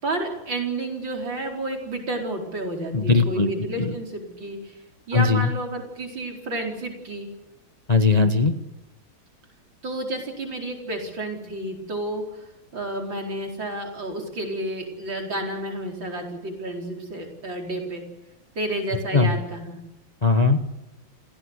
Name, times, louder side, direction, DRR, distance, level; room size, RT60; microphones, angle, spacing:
voice 1, 0.0-4.8 5.1-7.3 9.8-12.5 12.7-18.0 18.6-19.8, right 2 dB, 65° right, 1 dB, 5.3 m, -30 dB
voice 2, 2.9-3.5 3.8-3.9 5.1-5.4 7.9-8.5 19.1-19.3 20.2-20.6, left 4 dB, 25° left, 7 dB, 1.1 m, -19 dB
28.5 x 17.0 x 8.2 m, 0.92 s
omnidirectional pair, 2.2 m